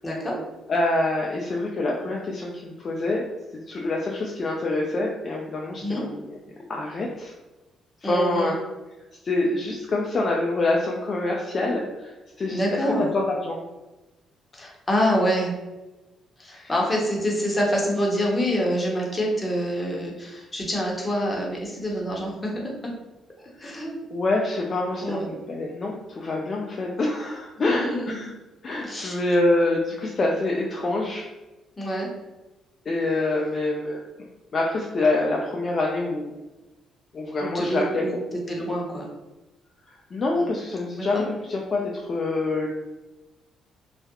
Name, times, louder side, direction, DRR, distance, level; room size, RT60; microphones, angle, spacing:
voice 1, 0.0-0.4 5.8-6.0 8.0-8.5 12.5-13.1 14.5-15.5 16.4-22.9 23.6-23.9 25.0-25.4 27.6-28.3 28.8-29.1 31.8-32.1 37.4-39.0 40.4-40.5 41.0-41.2, equal, 20° left, -2 dB, 0.7 m, -26 dB
voice 2, 0.7-3.3 3.7-6.3 6.7-7.3 8.0-8.5 9.2-12.6 13.1-13.6 16.5-16.7 24.1-28.3 28.6-31.3 32.9-34.0 34.5-36.3 37.1-38.0 39.9-42.7, left 2 dB, 45° left, -2 dB, 0.3 m, -26 dB
2.3 x 2.0 x 2.8 m, 1.1 s
cardioid pair, 90°, 0 cm